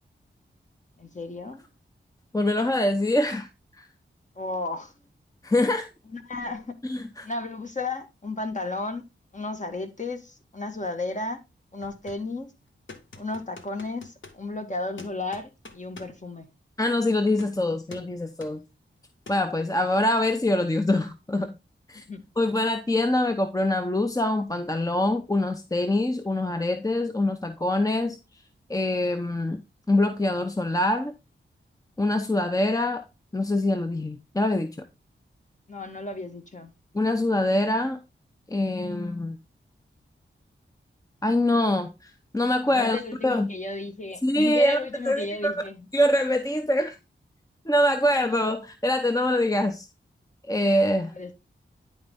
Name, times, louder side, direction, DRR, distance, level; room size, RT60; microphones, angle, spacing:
voice 1, 1.0-1.7 4.3-4.9 6.1-6.8 7.2-11.4 11.7-12.5 13.2-16.5 21.9-22.2 35.7-36.7 42.7-45.9 51.1-51.3, left 3 dB, 40° left, 1.8 m, -34 dB
voice 2, 2.3-3.5 3.8-3.9 5.4-5.9 6.8-7.3 16.8-18.6 19.3-21.6 21.9-22.0 22.4-28.2 28.7-29.6 29.9-31.1 32.0-33.0 33.3-34.8 36.9-38.0 38.5-39.4 41.2-43.5 44.2-44.8 45.0-45.5 45.9-47.0 47.7-49.9 50.5-51.1, left 1 dB, 15° left, 0.8 m, -24 dB
sound 1, 11.8-12.3 12.9-14.4 15.0-16.2 17.3-17.6 17.9-18.1 18.4-18.6 19.3-19.5, left 3 dB, 70° left, 1.4 m, -46 dB
10.5 x 4.3 x 3.6 m
cardioid pair, 50°, 20 cm